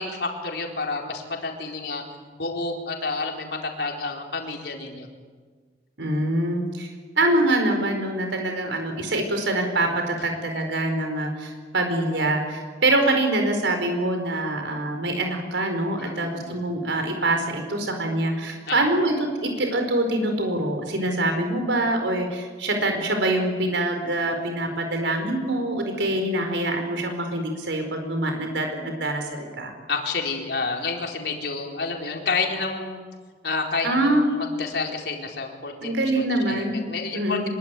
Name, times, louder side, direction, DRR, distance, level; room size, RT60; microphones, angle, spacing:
voice 1, 0.0-2.0 2.3-5.1 16.0-16.6 18.7-18.8 25.9-26.5 29.9-33.0 33.4-37.5, left 4 dB, 65° left, 1 dB, 4.4 m, -30 dB
voice 2, 6.0-6.9 7.2-29.7 33.8-34.3 35.8-36.8 37.1-37.5, right 1 dB, 85° right, 5 dB, 4.7 m, -24 dB
26.0 x 22.5 x 9.3 m, 1.6 s
head